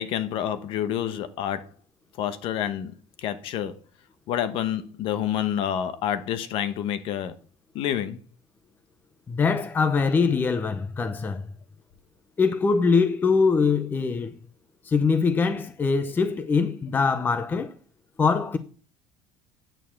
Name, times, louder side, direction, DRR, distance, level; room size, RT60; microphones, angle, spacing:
voice 1, 0.0-1.7 2.2-3.8 4.3-7.3 7.7-8.2, left 10 dB, 55° left, 1.1 m, -28 dB
voice 2, 9.3-11.5 12.4-14.4 14.8-17.7 18.2-18.6, left 5 dB, 20° left, 0.6 m, -23 dB
9.1 x 6.8 x 5.8 m
cardioid pair, 155°, 11 cm